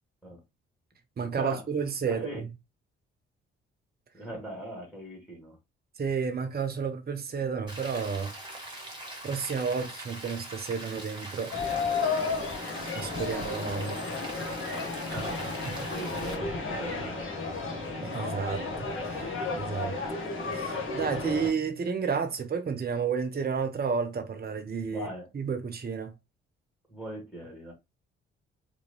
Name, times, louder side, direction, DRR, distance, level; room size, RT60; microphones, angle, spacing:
voice 1, 1.2-2.3 6.0-8.3 9.2-11.6 12.1-12.3 12.9-14.0 18.0-19.9 20.5-25.1 25.3-26.1, right 6 dB, 30° right, 0.9 m, -31 dB
voice 2, 2.1-2.4 4.1-5.6 15.1-15.4 15.9-17.5 19.7-19.9 21.1-21.3 24.9-25.3 26.9-27.7, right 1 dB, 5° left, 2.5 m, -40 dB
Rain, 7.7-16.3, right 1 dB, 15° right, 2.2 m, -42 dB
sound 1, 11.5-21.5, left 4 dB, 40° left, 1.5 m, -33 dB
5.0 x 3.2 x 2.3 m
figure-of-eight pair, 40°, 31 cm